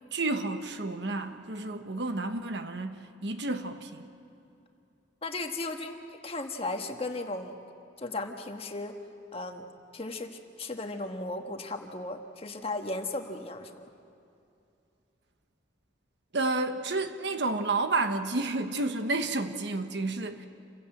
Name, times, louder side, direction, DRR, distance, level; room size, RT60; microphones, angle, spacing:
voice 1, 0.1-4.1 16.3-20.5, right 3 dB, 65° right, 7 dB, 1.2 m, -31 dB
voice 2, 5.2-7.6 8.0-9.0 9.3-13.9, left 2 dB, 30° left, 4 dB, 1.4 m, -36 dB
28.0 x 16.5 x 7.8 m, 2.6 s
head